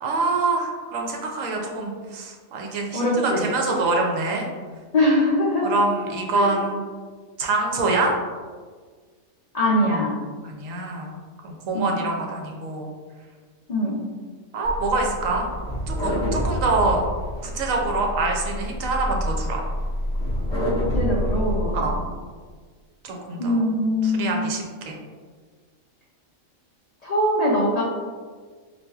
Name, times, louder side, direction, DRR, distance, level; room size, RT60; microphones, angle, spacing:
voice 1, 0.0-4.5 5.6-6.8 7.4-8.1 10.4-11.1 11.4-12.9 14.5-15.5 15.9-17.0 17.4-19.6 21.7-22.0 23.0-23.7 24.0-25.0, right 3 dB, 75° right, 1 dB, 1.0 m, -25 dB
voice 2, 2.9-3.5 4.9-5.8 6.3-6.5 9.5-10.2 11.7-12.0 13.7-14.0 20.9-21.9 23.4-24.4 27.0-27.8, left 1 dB, 80° left, -5 dB, 0.3 m, -22 dB
sound 1, 14.6-22.0, equal, 30° right, 1.6 m, -27 dB
4.0 x 2.4 x 2.3 m, 1.5 s
omnidirectional pair, 1.4 m